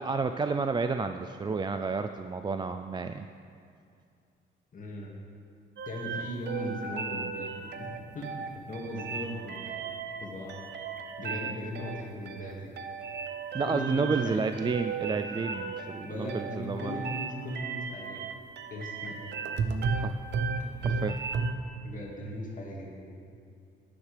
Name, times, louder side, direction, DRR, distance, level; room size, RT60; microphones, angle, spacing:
voice 1, 0.0-3.3 13.5-17.1 20.0-20.1 20.8-21.2, right 4 dB, 25° right, 8 dB, 0.3 m, -31 dB
voice 2, 4.7-5.2 5.9-9.9 10.2-10.6 11.2-12.7 13.6-14.5 15.3-15.5 16.0-18.2 18.7-19.2 21.8-23.1, left 1 dB, 40° left, -2 dB, 2.1 m, -38 dB
sound 1, 5.8-21.5, right 5 dB, 60° right, 0.7 m, -35 dB
11.0 x 10.5 x 3.4 m, 2.3 s
cardioid pair, 90°, 20 cm